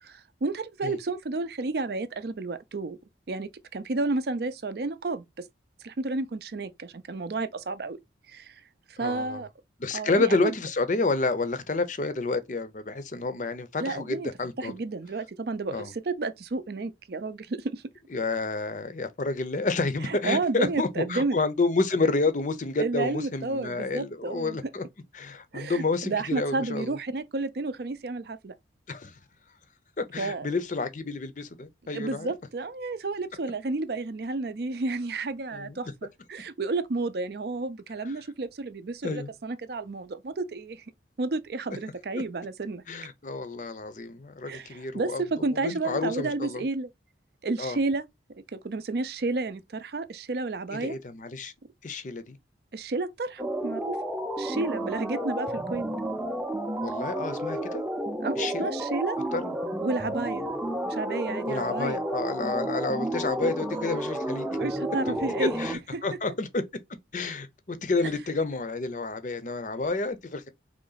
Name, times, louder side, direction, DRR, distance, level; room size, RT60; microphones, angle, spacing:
voice 1, 0.0-3.0 3.3-5.5 5.8-8.0 8.3-8.6 9.0-9.5 9.9-10.5 13.8-14.3 14.6-17.8 20.0-21.4 22.8-24.6 25.5-28.5 30.2-30.5 31.9-40.8 41.2-42.8 44.4-46.9 47.4-48.0 48.5-51.0 52.7-54.0 54.4-55.8 58.2-59.2 59.8-60.5 60.8-62.0 64.6-65.5 65.9-66.0, right 3 dB, 55° right, 0.5 m, -31 dB
voice 2, 9.0-9.4 9.8-14.7 15.7-15.9 18.1-24.8 25.1-27.0 28.9-29.1 30.0-32.3 35.5-35.9 38.0-38.1 39.0-39.3 42.1-42.2 42.9-45.2 45.6-46.6 47.6-47.8 50.7-51.5 51.8-52.4 56.8-57.8 58.4-58.7 59.3-59.5 61.5-64.5 65.1-66.6 67.1-70.5, left 3 dB, 40° left, 0.6 m, -29 dB
sound 1, 53.4-65.8, right 1 dB, 5° right, 0.5 m, -31 dB
3.8 x 3.1 x 3.9 m
head